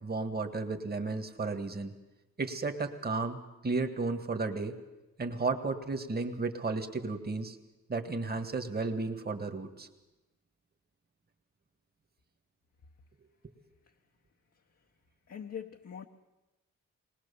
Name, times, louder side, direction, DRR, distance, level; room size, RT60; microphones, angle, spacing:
voice 1, 0.0-1.9 2.4-4.8 5.2-7.6 7.9-9.9, right 3 dB, 30° right, 7 dB, 1.8 m, -33 dB
voice 2, 15.3-16.1, left 8 dB, 55° left, 2 dB, 1.0 m, -42 dB
20.5 x 19.5 x 7.0 m, 1.0 s
cardioid pair, 90°, 30 cm